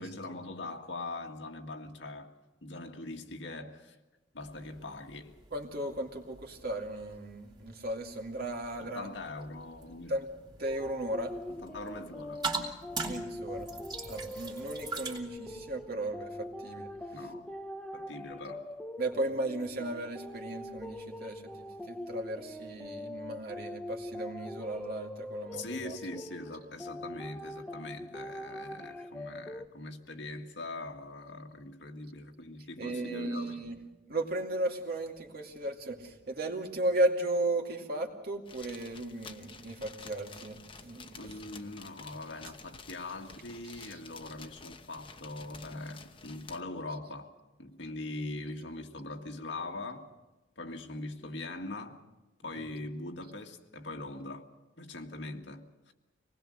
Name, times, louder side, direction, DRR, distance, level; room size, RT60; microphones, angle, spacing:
voice 1, 0.0-4.0 4.3-5.4 8.8-10.2 11.5-12.5 17.1-17.5 17.9-18.8 25.5-33.6 41.2-47.3 47.6-50.1 50.6-52.1 52.4-54.5 54.8-55.9, left 2 dB, 80° left, 1.9 m, -42 dB
sound 1, 4.4-15.2, right 3 dB, 25° right, 2.9 m, -43 dB
voice 2, 5.5-9.1 10.1-10.3 10.6-11.4 13.1-16.9 19.0-26.0 32.8-33.8 34.1-41.3 43.7-44.0, right 1 dB, 55° right, 2.4 m, -35 dB
sound 2, 10.6-29.7, left 1 dB, 5° left, 0.6 m, -43 dB
sound 3, 38.5-46.6, left 4 dB, 30° left, 1.0 m, -51 dB
26.0 x 19.5 x 6.5 m
head